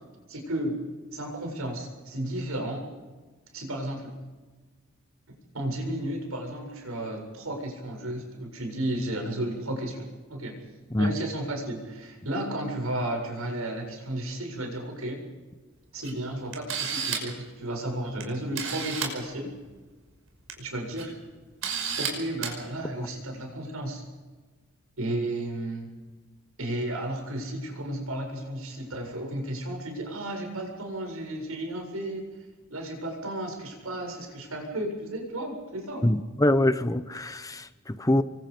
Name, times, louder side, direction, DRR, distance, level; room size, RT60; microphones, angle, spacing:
voice 1, 0.3-0.8 1.1-2.8 3.5-4.1 5.3-10.6 11.0-15.2 15.9-19.5 20.6-21.1 22.0-24.0 25.0-25.9 26.6-32.3 32.7-36.1, right 1 dB, 85° right, 2 dB, 7.6 m, -33 dB
Camera, 16.0-16.1 16.5-17.4 18.2-18.3 18.5-19.1 20.3-20.5 21.0-21.1 21.6-22.1 22.4-22.5, right 7 dB, 70° right, 5.7 m, -30 dB
voice 2, 36.0-38.2, left 1 dB, 15° left, 12 dB, 0.9 m, -24 dB
27.5 x 24.0 x 5.3 m, 1.3 s
head